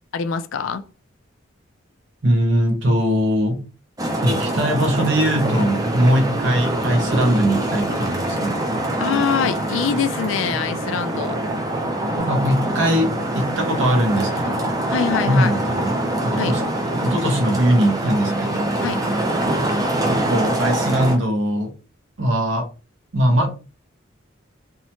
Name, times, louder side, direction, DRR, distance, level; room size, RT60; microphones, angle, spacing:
voice 1, 0.1-0.8 9.0-11.4 14.9-15.5 16.4-16.5 18.8-19.0, left 6 dB, 70° left, 0.3 m, -24 dB
voice 2, 2.2-3.7 4.2-8.6 12.2-14.8 15.3-16.6 17.0-18.7 20.1-21.7 22.2-22.7 23.1-23.5, equal, 65° right, 0.7 m, -21 dB
Traffic noise roadway noise, 4.0-21.2, right 1 dB, 15° right, 0.4 m, -24 dB
2.7 x 2.1 x 2.8 m
head